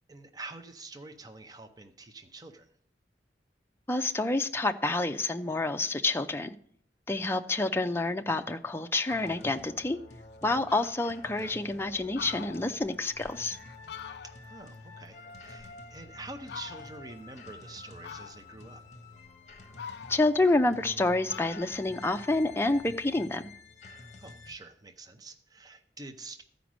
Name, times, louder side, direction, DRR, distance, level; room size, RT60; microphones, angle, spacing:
voice 1, 0.1-2.7 10.4-10.7 14.2-18.8 24.2-26.4, right 3 dB, 20° right, 6 dB, 0.7 m, -46 dB
voice 2, 3.9-6.5 7.1-10.0 10.4-13.6 20.1-23.4, left 2 dB, 15° left, 6 dB, 0.5 m, -28 dB
Fowl, 8.4-8.5 8.9-9.5 10.0-10.1 10.4-10.5 10.7-11.6 12.0-14.6 15.0-16.0 16.4-17.1 18.0-18.7 19.2-21.0 21.3-22.9, left 7 dB, 65° left, 0.4 m, -46 dB
sound 1, 9.1-24.5, left 3 dB, 40° left, 1.0 m, -49 dB
13.5 x 5.1 x 6.1 m, 0.62 s
head